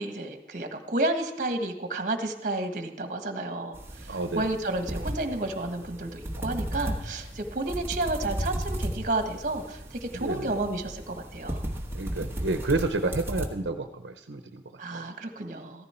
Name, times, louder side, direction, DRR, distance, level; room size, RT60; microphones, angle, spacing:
voice 1, 0.0-3.8 4.3-11.6 14.8-15.9, right 2 dB, 45° right, 6 dB, 1.4 m, -31 dB
sound 1, 3.7-13.5, right 1 dB, 15° right, 1.3 m, -35 dB
voice 2, 4.1-4.4 10.1-10.5 11.9-14.6 14.9-15.0, right 2 dB, 85° right, 7 dB, 0.8 m, -30 dB
15.0 x 14.0 x 4.4 m, 0.94 s
head